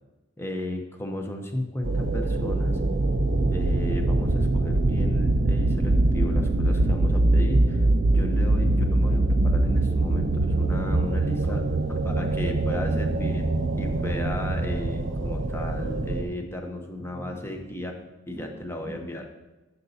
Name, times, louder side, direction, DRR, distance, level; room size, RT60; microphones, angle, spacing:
voice 1, 0.4-2.8 3.5-13.5 13.8-18.0 18.3-19.3, left 1 dB, 15° left, 3 dB, 0.8 m, -34 dB
sound 1, 1.8-16.2, right 2 dB, 75° right, 0.7 m, -23 dB
10.5 x 6.8 x 2.8 m, 1.1 s
head